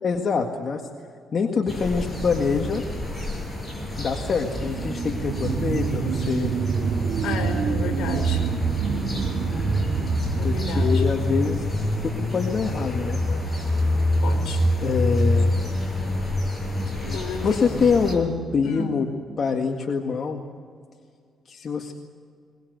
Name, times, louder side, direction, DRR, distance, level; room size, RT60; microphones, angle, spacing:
voice 1, 0.0-0.8 1.3-2.8 4.0-6.5 10.4-11.7 12.0-13.2 14.8-15.6 17.1-19.1 19.4-20.4 21.5-21.9, left 5 dB, 50° left, 3 dB, 1.9 m, -25 dB
sound 1, 1.7-18.2, left 1 dB, 20° left, 7.1 m, -27 dB
sound 2, 4.3-13.3 13.7-13.8, right 6 dB, 65° right, 2.3 m, -27 dB
voice 2, 7.2-8.4 10.3-11.0 13.3-13.4 14.2-14.6 16.9-17.6 18.6-18.9, left 4 dB, 75° left, 3 dB, 5.0 m, -32 dB
23.0 x 21.0 x 8.1 m, 2.1 s
cardioid pair, 90°, 0 cm